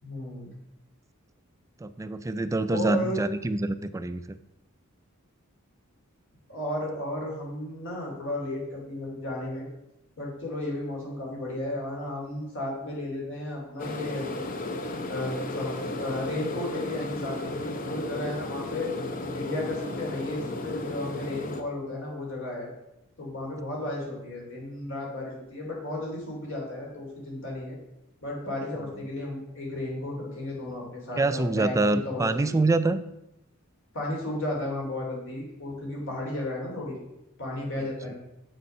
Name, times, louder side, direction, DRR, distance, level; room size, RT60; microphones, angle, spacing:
voice 1, 0.0-0.5 2.7-3.2 6.5-9.7 10.2-14.4 15.1-18.9 19.3-22.7 23.2-27.8 28.2-31.8 32.0-32.6 33.9-37.0 37.4-38.2, left 1 dB, 60° left, -2 dB, 3.0 m, -34 dB
voice 2, 1.8-4.4 31.2-33.0, right 2 dB, 15° right, 11 dB, 0.3 m, -26 dB
sound 1, 13.8-21.6, left 2 dB, 40° left, 0.8 m, -34 dB
7.4 x 6.6 x 5.5 m, 0.89 s
head